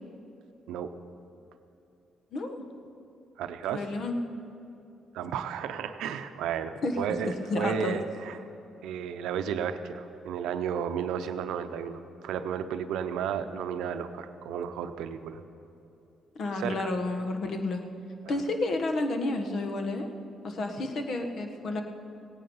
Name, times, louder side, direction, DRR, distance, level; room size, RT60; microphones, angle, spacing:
voice 1, 2.3-2.6 3.7-4.1 6.8-7.0 7.2-8.0 16.3-17.8 18.3-20.1 20.4-21.8, left 2 dB, 60° left, 5 dB, 1.4 m, -31 dB
voice 2, 3.4-3.9 5.1-8.4 8.8-15.4 16.5-16.9, right 8 dB, 85° right, 9 dB, 0.7 m, -33 dB
17.5 x 9.4 x 5.5 m, 2.7 s
cardioid pair, 90°, 0 cm